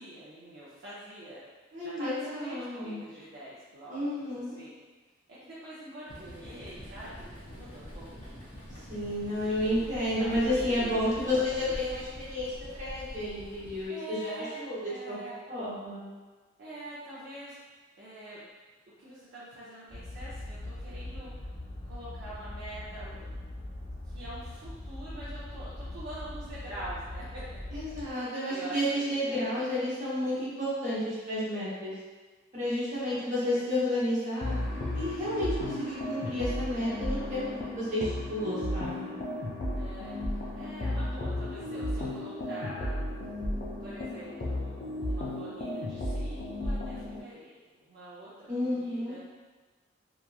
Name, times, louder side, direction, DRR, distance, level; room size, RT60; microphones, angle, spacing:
voice 1, 0.0-1.4 1.8-2.1 2.4-4.7 5.4-8.5 9.2-10.9 11.2-11.8 13.9-15.4 16.6-17.6 18.0-18.4 19.0-21.3 21.8-23.3 24.0-27.4 28.1-28.8 29.2-29.6 33.1-33.6 39.7-43.0 43.8-44.7 45.0-47.6 47.9-49.2, right 1 dB, 60° right, -9 dB, 0.5 m, -45 dB
voice 2, 1.7-3.0 3.9-4.6 8.9-16.1 27.7-31.9 32.5-34.6 34.9-39.1 48.5-49.2, left 1 dB, 40° right, -9 dB, 0.9 m, -31 dB
sound 1, 6.1-13.9, equal, 25° left, 0.8 m, -44 dB
sound 2, 19.9-28.1, left 1 dB, 5° right, 0.9 m, -41 dB
sound 3, 34.4-47.2, left 1 dB, 45° left, 0.4 m, -34 dB
2.9 x 2.3 x 2.3 m, 1.3 s
head